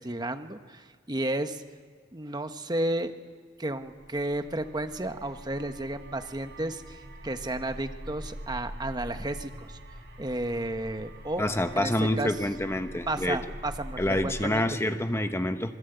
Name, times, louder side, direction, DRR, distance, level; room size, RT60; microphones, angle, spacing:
voice 1, 0.0-1.6 2.1-3.1 3.6-9.8 10.2-11.5 11.7-12.3 13.1-14.8, right 1 dB, 20° right, 7 dB, 1.2 m, -32 dB
sound 1, 3.8-14.5, equal, 65° right, 4.1 m, -44 dB
voice 2, 11.4-13.4 14.0-15.7, left 1 dB, 15° left, 8 dB, 1.1 m, -27 dB
27.0 x 22.0 x 8.1 m, 1.5 s
head